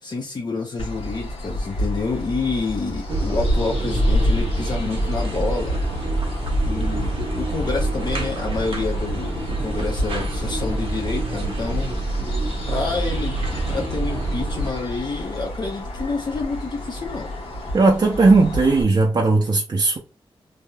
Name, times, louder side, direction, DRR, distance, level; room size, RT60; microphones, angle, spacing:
voice 1, 0.0-5.8 6.6-11.9 12.7-13.4 13.7-17.3, left 4 dB, 45° left, 0.6 m, -28 dB
sound 1, 0.8-18.8, equal, 85° left, 1.2 m, -28 dB
sound 2, 3.1-14.7, right 2 dB, 65° right, 0.9 m, -27 dB
voice 2, 17.7-20.0, right 3 dB, 45° right, 0.5 m, -17 dB
3.3 x 2.7 x 2.2 m
wide cardioid pair, 100°, 10 cm